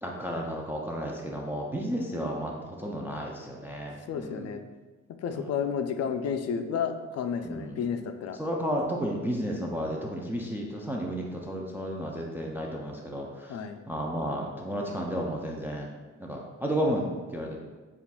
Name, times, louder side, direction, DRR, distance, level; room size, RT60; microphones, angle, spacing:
voice 1, 0.0-4.5 5.3-5.5 7.4-7.8 8.4-13.6 13.9-15.9 16.2-17.6, equal, 5° right, -1 dB, 0.4 m, -32 dB
voice 2, 4.1-4.6 5.2-8.4 13.5-13.8, left 7 dB, 55° left, 8 dB, 0.4 m, -31 dB
6.7 x 2.5 x 2.2 m, 1.3 s
cardioid pair, 90°, 30 cm